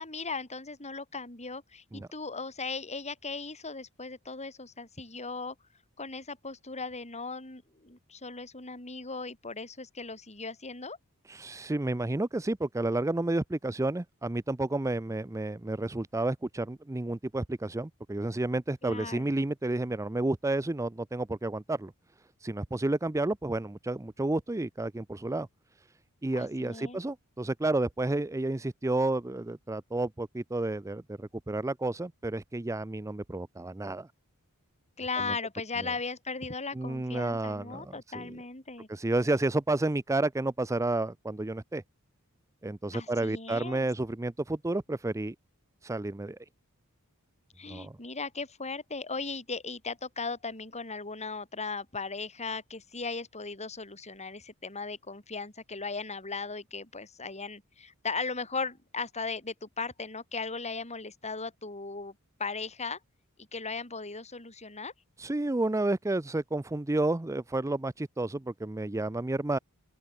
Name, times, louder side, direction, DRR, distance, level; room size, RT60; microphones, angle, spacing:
voice 1, 0.0-5.6 6.0-11.0 18.8-19.3 26.4-27.0 35.0-38.9 42.9-43.8 47.6-62.1 62.4-63.0 63.4-64.9, left 4 dB, 30° left, 7.0 m, -37 dB
voice 2, 11.3-21.9 22.4-25.5 26.2-34.1 35.2-35.3 35.8-35.9 36.7-38.4 38.9-41.8 42.6-45.3 45.8-46.4 47.7-48.0 65.2-69.6, right 2 dB, 15° right, 0.5 m, -31 dB
open air
head